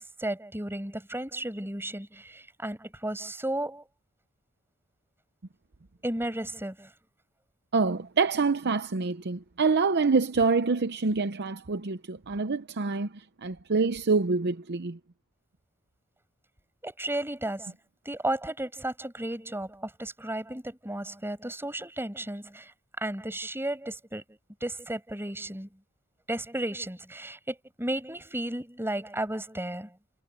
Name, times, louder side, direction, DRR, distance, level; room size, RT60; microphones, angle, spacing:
voice 1, 0.0-3.8 6.0-6.9 16.8-17.7 18.1-24.2 24.6-25.7 26.3-30.0, right 1 dB, 10° right, 7.4 m, -34 dB
voice 2, 7.7-13.1 13.4-15.0, right 4 dB, 50° right, 0.7 m, -26 dB
head